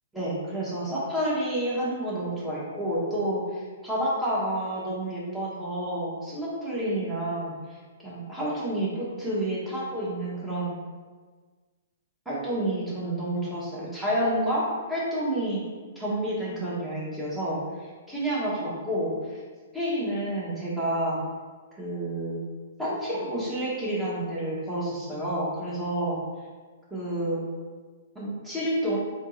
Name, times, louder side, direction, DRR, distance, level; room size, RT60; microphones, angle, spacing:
voice 1, 0.1-7.8 8.0-10.8 12.2-15.6 15.9-19.4 19.7-21.2 21.8-22.4 22.8-26.2 26.9-27.4 28.1-29.0, right 1 dB, 5° right, -8 dB, 1.4 m, -29 dB
3.5 x 3.0 x 3.9 m, 1.5 s
figure-of-eight pair, 115°, 0 cm